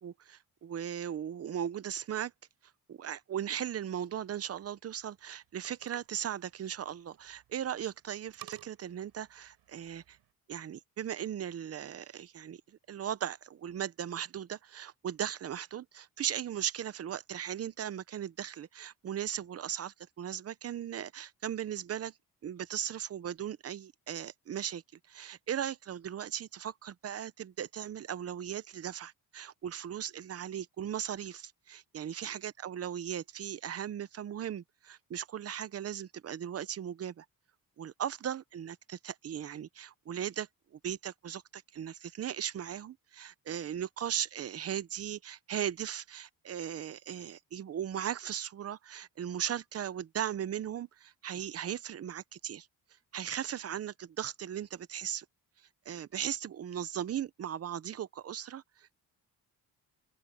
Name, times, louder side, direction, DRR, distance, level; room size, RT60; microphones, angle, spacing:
voice 1, 0.0-2.3 2.9-10.2 10.5-22.1 22.4-24.8 25.1-37.2 37.8-52.7 53.1-55.3 55.9-58.9, right 9 dB, 40° right, 0.7 m, -38 dB
sound 1, 4.0-10.3, right 13 dB, 85° right, 3.9 m, -57 dB
open air
cardioid pair, 140°, 37 cm